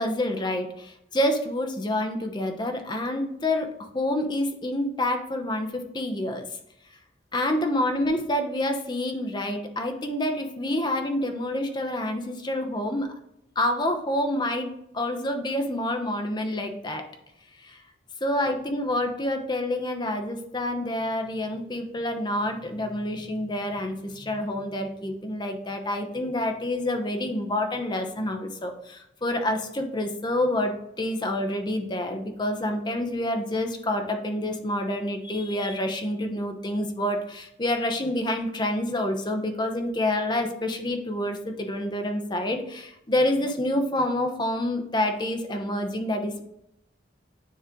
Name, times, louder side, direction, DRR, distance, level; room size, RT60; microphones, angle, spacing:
voice 1, 0.0-6.5 7.3-13.1 13.6-17.0 17.6-17.8 18.2-46.4, left 1 dB, 25° left, 5 dB, 0.9 m, -28 dB
9.3 x 3.2 x 3.8 m, 0.80 s
head